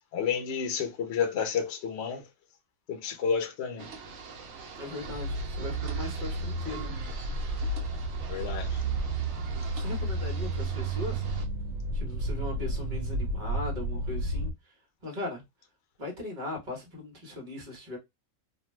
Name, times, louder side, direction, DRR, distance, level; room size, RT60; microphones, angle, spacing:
voice 1, 0.1-2.3 2.9-3.9 8.3-8.8, left 6 dB, 60° left, 0.8 m, -30 dB
sound 1, 3.8-11.5, right 5 dB, 65° right, 0.9 m, -44 dB
voice 2, 4.7-7.0 9.7-11.2 11.9-14.5 15.0-15.4 16.0-18.0, left 2 dB, 40° right, 1.1 m, -39 dB
sound 2, 5.0-14.5, right 2 dB, 85° right, 1.1 m, -32 dB
2.6 x 2.2 x 3.1 m
omnidirectional pair, 1.4 m